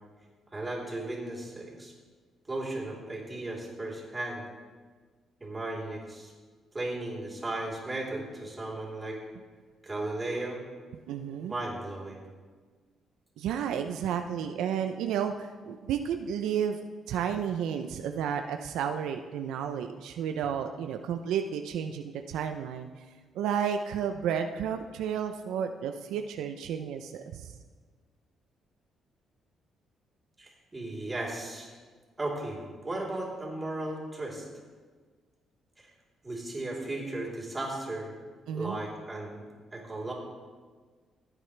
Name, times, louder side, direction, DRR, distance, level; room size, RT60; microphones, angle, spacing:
voice 1, 0.5-1.9 2.5-4.4 5.4-6.3 6.7-9.2 9.8-10.6 11.5-12.2 30.4-31.7 32.2-34.4 35.8-35.9 36.2-38.1 38.5-39.4 39.7-40.1, right 2 dB, 20° right, -4 dB, 3.4 m, -35 dB
voice 2, 11.1-11.5 13.4-16.8 17.1-22.9 23.3-27.5 38.5-38.8, right 8 dB, 85° right, 6 dB, 0.5 m, -32 dB
15.5 x 8.9 x 3.3 m, 1.5 s
cardioid pair, 90°, 0 cm